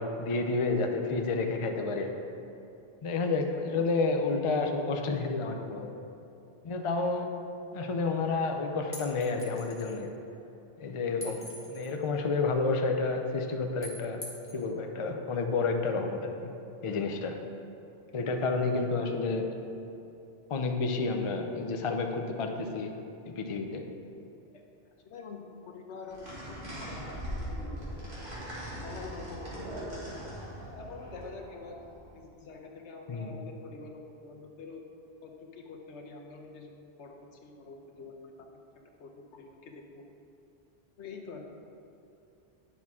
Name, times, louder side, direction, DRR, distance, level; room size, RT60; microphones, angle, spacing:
voice 1, 0.0-2.1 3.0-6.0 6.6-7.3 7.7-10.1 10.8-14.2 14.5-16.5 16.8-17.4 18.1-19.5 20.5-22.9 23.3-23.8 33.1-33.5, left 3 dB, 40° left, 4 dB, 0.4 m, -30 dB
voice 2, 3.2-3.9 7.0-7.3 18.1-18.4 24.5-24.6 25.0-28.3 28.8-29.8 30.7-31.8 32.1-34.8 35.2-36.7 37.0-38.6 39.0-40.0 41.0-41.4, left 4 dB, 75° left, 2 dB, 1.1 m, -46 dB
sound 1, 8.9-10.0 11.2-12.0 13.8-14.6, equal, 10° left, 1.1 m, -44 dB
sound 2, 26.1-32.1, right 1 dB, 50° right, 2.0 m, -40 dB
9.9 x 6.0 x 3.6 m, 2.8 s
omnidirectional pair, 1.2 m